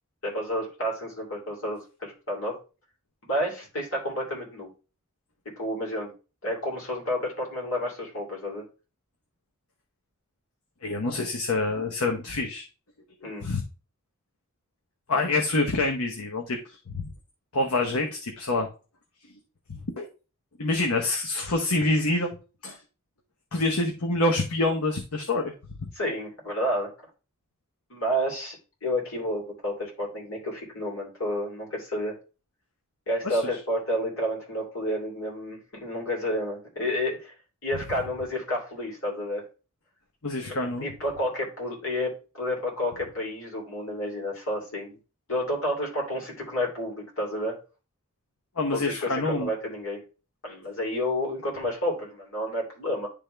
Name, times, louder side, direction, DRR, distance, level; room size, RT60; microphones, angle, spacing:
voice 1, 0.2-2.5 3.2-4.7 5.6-6.1 6.4-8.6 13.2-13.5 25.9-26.9 27.9-32.2 33.1-37.3 37.6-39.4 40.4-45.0 45.3-47.5 48.7-50.0 50.4-53.1, equal, 65° left, -2 dB, 3.1 m, -30 dB
voice 2, 10.8-12.6 13.4-13.6 15.1-17.0 17.5-18.7 19.7-20.1 20.6-22.3 22.6-22.8 23.5-25.5 25.8-25.9 33.2-33.4 40.2-40.9 48.6-49.5, left 2 dB, 80° left, 2 dB, 0.9 m, -26 dB
10.0 x 3.6 x 3.3 m, 0.33 s
head